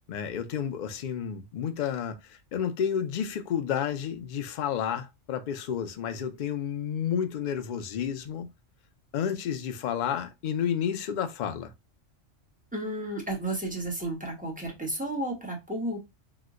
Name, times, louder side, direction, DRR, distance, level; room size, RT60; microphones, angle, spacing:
voice 1, 0.1-8.5 9.1-11.7, left 8 dB, 85° left, 0.4 m, -31 dB
voice 2, 12.7-16.0, right 1 dB, 10° right, 0.7 m, -32 dB
2.9 x 2.1 x 3.5 m
omnidirectional pair, 1.3 m